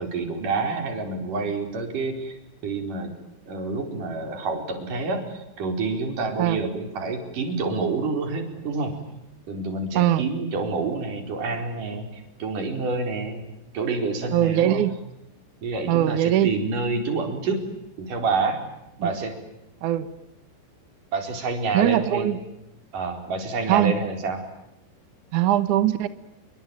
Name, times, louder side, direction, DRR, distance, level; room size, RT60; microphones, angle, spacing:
voice 1, 0.0-2.4 2.6-3.2 3.5-8.9 9.5-13.4 13.7-14.8 15.6-17.6 18.0-18.6 19.0-19.4 21.1-22.3 22.9-24.4, right 3 dB, 45° right, 6 dB, 5.7 m, -28 dB
voice 2, 10.0-10.3 14.3-15.0 15.9-16.5 19.0-19.1 19.8-20.1 21.7-22.4 23.7-24.0 25.3-26.1, right 12 dB, 85° right, 14 dB, 1.7 m, -21 dB
28.5 x 23.5 x 8.8 m, 0.86 s
omnidirectional pair, 5.5 m